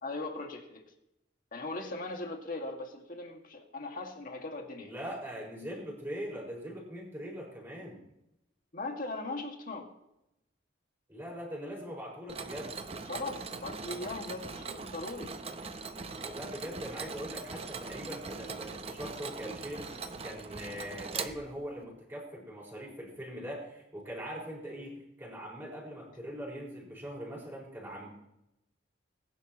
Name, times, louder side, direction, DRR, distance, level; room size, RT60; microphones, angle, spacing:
voice 1, 0.0-0.8 1.5-4.9 5.6-5.7 8.7-9.9 13.1-15.4, left 2 dB, 50° left, 2 dB, 1.9 m, -39 dB
voice 2, 4.8-8.0 11.1-12.7 16.2-28.1, equal, 10° right, -3 dB, 4.9 m, -41 dB
Mechanisms, 12.3-21.8, right 4 dB, 35° right, 0.7 m, -41 dB
20.5 x 10.0 x 3.0 m, 0.86 s
head